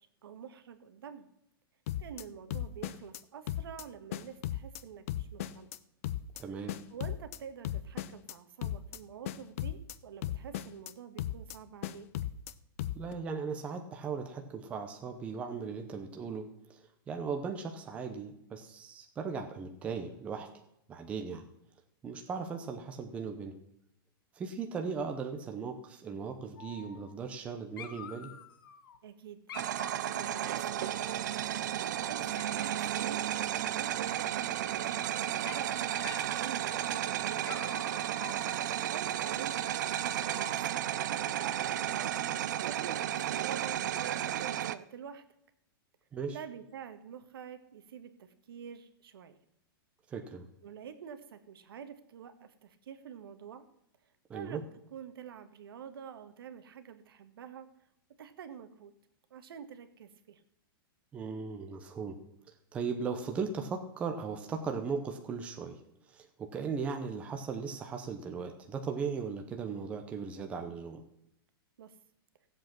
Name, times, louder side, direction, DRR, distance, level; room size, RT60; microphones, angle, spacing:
voice 1, 0.2-1.3 2.0-5.7 6.9-12.1 29.0-29.4 29.8-31.4 31.7-33.3 33.7-37.8 38.8-41.9 42.5-45.2 46.3-49.4 50.6-53.7 54.3-54.6 54.9-57.7 58.2-58.9 59.3-60.4 71.8-71.9, right 8 dB, 70° right, 9 dB, 1.6 m, -47 dB
sound 1, 1.9-2.2 2.5-3.2 3.5-3.8 4.1-4.8 5.1-5.8 6.0-6.4 6.7-7.4 7.6-8.3 8.6-9.0 9.2-9.9 10.2-10.9 11.2-11.6 11.8-12.5 12.8-13.1, left 13 dB, 35° left, 0.5 m, -36 dB
voice 2, 6.4-6.8 12.9-20.5 20.9-21.4 22.0-23.5 24.3-28.3 46.1-46.4 50.1-50.5 54.3-54.6 61.1-62.2 62.7-65.8 66.1-71.0, right 5 dB, 10° right, 4 dB, 0.8 m, -37 dB
Dog, 26.6-27.5 27.8-29.0 29.5-31.6 32.3-33.0 34.4-35.1 35.4-35.8 36.0-36.3 36.7-37.1 37.4-38.9 39.6-40.9, left 8 dB, 65° left, 1.4 m, -49 dB
sound 2, 29.5-44.8, right 11 dB, 50° right, 0.6 m, -33 dB
16.0 x 7.9 x 6.0 m, 0.77 s
supercardioid pair, 180°, 12 cm